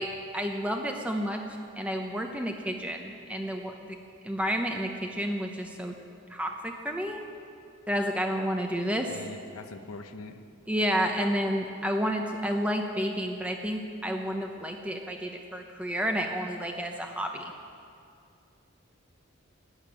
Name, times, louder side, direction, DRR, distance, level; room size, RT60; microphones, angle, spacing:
voice 1, 0.0-1.4 1.8-3.7 4.2-5.9 6.3-7.2 7.9-9.1 10.7-17.5, equal, 5° right, 3 dB, 0.7 m, -30 dB
voice 2, 9.0-10.4, left 3 dB, 85° left, 7 dB, 1.0 m, -43 dB
13.0 x 10.0 x 8.7 m, 2.4 s
head